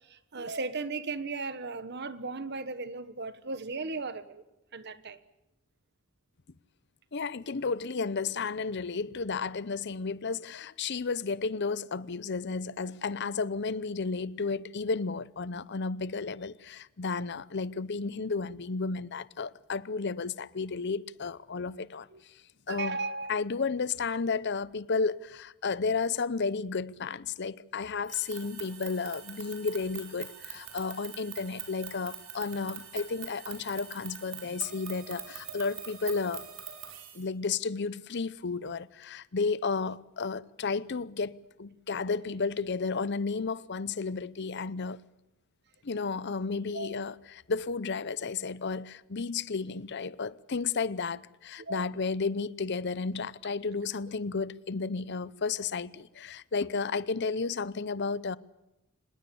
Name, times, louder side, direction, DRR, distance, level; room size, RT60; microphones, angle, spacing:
voice 1, 0.1-4.4 4.7-5.2 22.1-22.2 22.7-23.3 46.7-46.9 51.6-51.8, right 3 dB, 55° right, 1.4 m, -36 dB
voice 2, 7.1-22.1 22.7-23.0 23.3-36.4 37.1-45.0 45.8-58.4, left 4 dB, 55° left, 0.7 m, -32 dB
sound 1, 28.0-37.2, right 9 dB, 80° right, 5.1 m, -43 dB
26.0 x 20.5 x 7.1 m
head